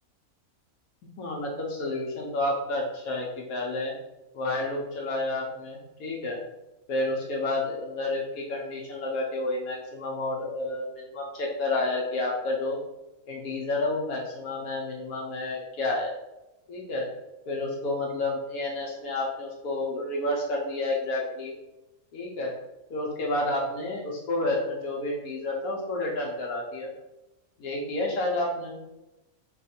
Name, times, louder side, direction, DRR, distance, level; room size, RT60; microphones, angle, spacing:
voice 1, 1.2-3.9 4.3-6.4 6.9-12.8 13.3-16.1 16.7-17.1 17.5-21.5 22.1-22.5 22.9-26.9 27.6-28.7, left 2 dB, 75° left, -1 dB, 1.2 m, -30 dB
4.1 x 2.4 x 4.2 m, 0.98 s
omnidirectional pair, 1.6 m